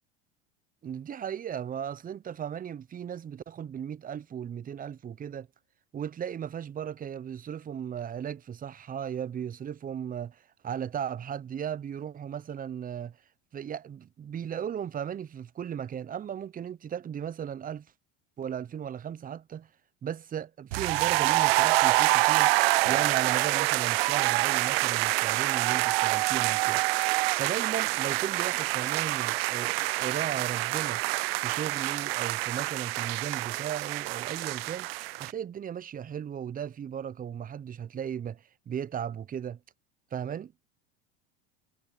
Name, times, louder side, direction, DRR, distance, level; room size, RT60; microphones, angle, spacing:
voice 1, 0.8-5.5 5.9-13.2 13.5-17.9 18.4-19.7 20.0-22.5 22.9-26.8 27.4-31.0 31.4-34.9 35.2-39.6 40.1-40.5, right 8 dB, 25° right, 0.9 m, -36 dB
sound 1, 20.7-35.3, right 22 dB, 70° right, 0.5 m, -26 dB
hypercardioid pair, 80°, 31 cm